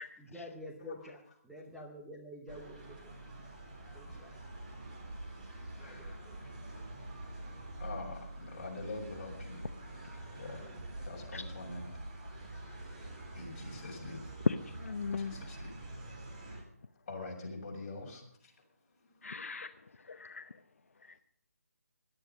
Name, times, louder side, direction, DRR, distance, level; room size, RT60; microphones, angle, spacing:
voice 1, 0.2-3.1 3.9-4.4 4.7-4.8 5.8-6.4 10.6-10.9, left 1 dB, ahead, -4 dB, 0.9 m, -49 dB
sound 1, 2.5-16.6, right 1 dB, 30° right, 3.6 m, -46 dB
voice 2, 5.8-6.3 7.8-9.6 10.4-10.6 11.0-11.9 13.3-14.3 15.2-15.7 17.1-18.5 19.0-19.2, left 3 dB, 30° left, -3 dB, 5.4 m, -44 dB
voice 3, 14.4-15.3 19.2-20.6 21.0-21.2, left 5 dB, 60° left, 8 dB, 0.8 m, -36 dB
17.5 x 11.5 x 5.3 m, 0.69 s
hypercardioid pair, 170°, 8 cm